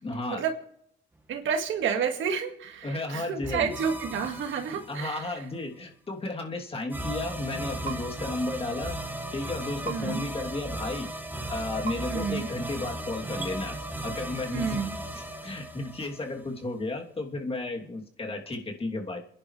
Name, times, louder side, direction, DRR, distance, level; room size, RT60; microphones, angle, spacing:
voice 1, 0.0-0.4 2.8-3.7 4.9-9.0 9.3-11.1 11.5-13.8 14.0-14.8 15.1-19.2, left 2 dB, 30° left, 0 dB, 3.0 m, -33 dB
voice 2, 1.3-5.4 9.9-10.2 12.1-12.5 14.5-14.9, right 7 dB, 75° right, 4 dB, 2.0 m, -30 dB
sound 1, 3.4-5.3 6.9-16.6, right 1 dB, 10° right, 1.7 m, -36 dB
sound 2, 7.8-8.0 9.8-10.0 11.8-12.0 13.4-13.5, right 7 dB, 40° right, 3.0 m, -35 dB
28.0 x 11.0 x 3.3 m, 0.69 s
cardioid pair, 90°, 20 cm